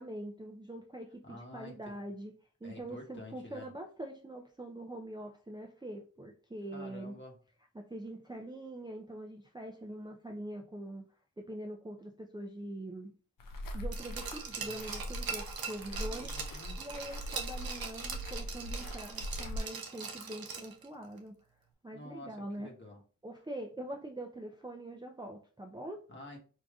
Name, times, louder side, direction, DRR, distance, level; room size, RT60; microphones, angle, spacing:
voice 1, 0.0-2.3 2.6-7.1 7.7-11.0 11.4-13.1 13.7-16.4 16.8-21.3 21.8-22.7 23.2-26.0, right 1 dB, 15° right, 0.5 m, -43 dB
voice 2, 1.2-1.9 2.6-3.7 6.7-7.3 16.0-16.9 21.9-23.0 26.1-26.4, left 1 dB, 35° left, 1.1 m, -49 dB
sound 1, 13.4-19.6, equal, 70° left, 0.6 m, -41 dB
Glass, 13.9-20.9 21.2-21.3, right 5 dB, 90° right, 0.6 m, -41 dB
4.8 x 2.5 x 2.3 m
cardioid pair, 50°, 35 cm